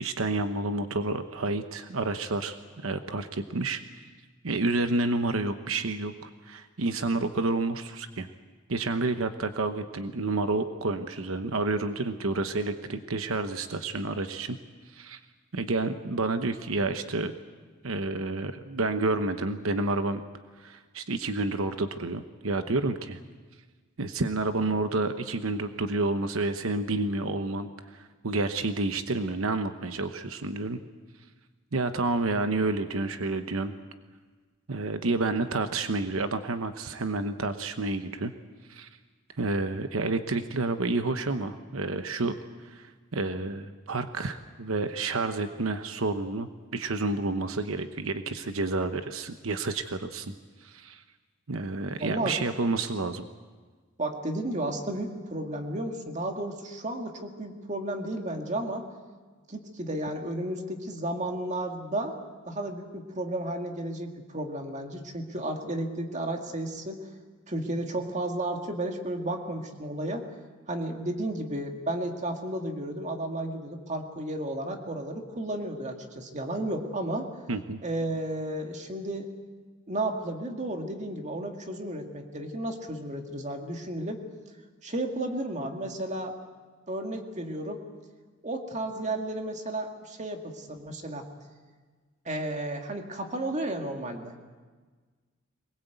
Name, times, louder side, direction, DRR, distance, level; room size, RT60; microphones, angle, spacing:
voice 1, 0.0-3.8 4.4-8.3 8.7-14.6 14.8-15.2 15.5-17.3 17.8-20.2 20.6-23.2 24.0-30.8 31.7-33.7 34.7-38.3 38.7-38.9 39.4-42.3 42.6-50.3 50.6-51.0 51.5-53.3 77.5-77.8, right 3 dB, 85° right, 9 dB, 1.0 m, -29 dB
voice 2, 52.0-52.4 54.0-58.9 59.5-62.2 62.5-67.0 67.5-70.2 70.7-77.3 77.8-79.3 79.9-84.2 84.8-86.3 86.9-87.8 88.4-91.2 92.3-94.4, right 1 dB, 35° right, 4 dB, 2.2 m, -33 dB
23.0 x 21.0 x 8.1 m, 1.4 s
head